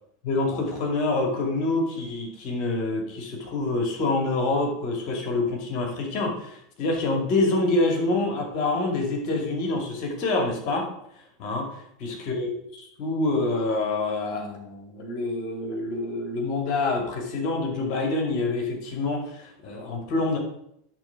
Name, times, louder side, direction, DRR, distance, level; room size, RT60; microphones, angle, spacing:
voice 1, 0.2-10.9 11.4-12.5 12.8-20.4, left 2 dB, 55° left, 1 dB, 2.4 m, -26 dB
10.5 x 3.8 x 5.8 m, 0.74 s
hypercardioid pair, 85°, 0 cm